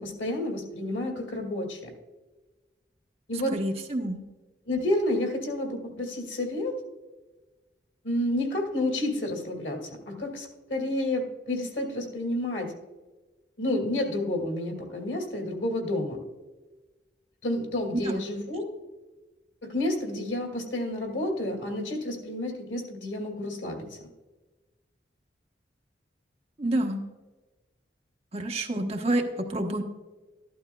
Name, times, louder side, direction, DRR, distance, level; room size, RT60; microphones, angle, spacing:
voice 1, 0.0-1.9 3.3-3.6 4.7-6.7 8.0-12.7 13.6-16.2 17.4-18.7 19.6-23.9, left 1 dB, 90° left, 2 dB, 2.2 m, -30 dB
voice 2, 3.5-4.2 17.9-18.2 26.6-27.0 28.3-29.8, right 1 dB, 35° right, 2 dB, 1.0 m, -28 dB
13.5 x 11.5 x 2.3 m, 1.2 s
head